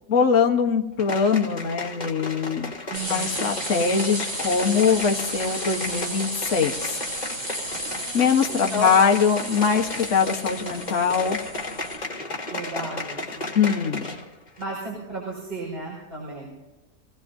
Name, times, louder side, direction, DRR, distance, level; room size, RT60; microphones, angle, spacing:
voice 1, 0.1-2.7 3.1-7.0 8.1-11.4 13.5-14.1, left 6 dB, 50° left, 3 dB, 1.5 m, -22 dB
sound 1, 1.0-14.3 14.6-14.7, left 2 dB, 25° left, 2.0 m, -34 dB
voice 2, 2.9-3.5 8.7-8.9 12.5-13.5 14.6-16.5, right 1 dB, 35° right, -5 dB, 5.6 m, -33 dB
sound 2, 2.9-12.0, right 1 dB, 75° right, 5.8 m, -33 dB
25.0 x 17.5 x 2.7 m, 1.1 s
omnidirectional pair, 1.7 m